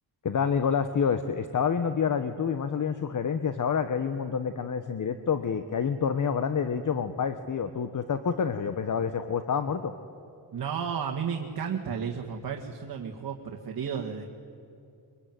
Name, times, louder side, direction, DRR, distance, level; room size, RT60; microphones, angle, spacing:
voice 1, 0.2-9.9, left 6 dB, 45° left, 9 dB, 1.2 m, -28 dB
voice 2, 10.5-14.3, right 7 dB, 60° right, 1 dB, 2.0 m, -33 dB
23.5 x 23.0 x 9.3 m, 2.5 s
cardioid pair, 95°, 41 cm